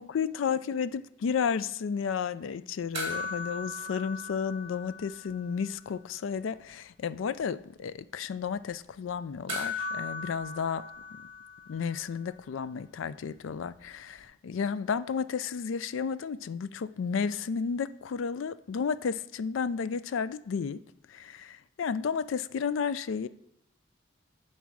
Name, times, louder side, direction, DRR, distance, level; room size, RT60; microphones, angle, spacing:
voice 1, 0.0-10.8 11.1-11.2 11.7-20.8 21.1-23.3, left 6 dB, 75° left, 0.4 m, -32 dB
sound 1, 2.9-5.6 5.9-6.0 9.5-12.1 14.2-14.3, left 3 dB, 30° right, 2.2 m, -38 dB
9.3 x 4.2 x 6.2 m
head